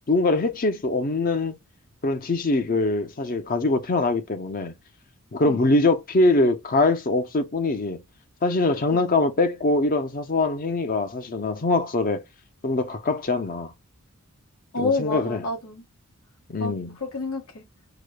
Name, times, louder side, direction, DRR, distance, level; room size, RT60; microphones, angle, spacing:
voice 1, 0.1-1.5 2.0-4.7 5.3-8.0 8.4-12.2 12.6-13.7 14.8-15.4 16.5-17.0, left 2 dB, 40° left, 0.6 m, -23 dB
voice 2, 14.7-15.8 16.6-16.7 17.0-17.6, left 3 dB, 80° left, 1.5 m, -28 dB
4.9 x 2.1 x 2.2 m
head